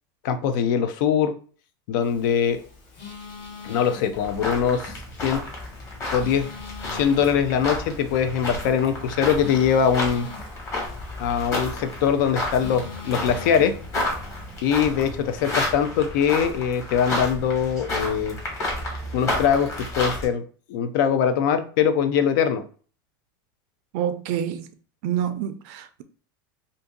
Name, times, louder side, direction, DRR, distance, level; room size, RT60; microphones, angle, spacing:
voice 1, 0.2-1.3 1.9-2.6 3.6-5.0 5.2-5.4 6.1-6.5 6.9-10.3 11.2-13.7 14.6-18.4 19.1-20.4 20.7-22.6, left 7 dB, 65° left, 0.5 m, -22 dB
Telephone, 2.0-14.8, left 4 dB, 40° left, 1.2 m, -44 dB
sound 1, 4.1-20.2, left 2 dB, 25° left, 1.3 m, -31 dB
voice 2, 23.9-24.7 25.0-26.0, right 10 dB, 50° right, 0.4 m, -27 dB
2.6 x 2.6 x 3.7 m
supercardioid pair, 155°, 11 cm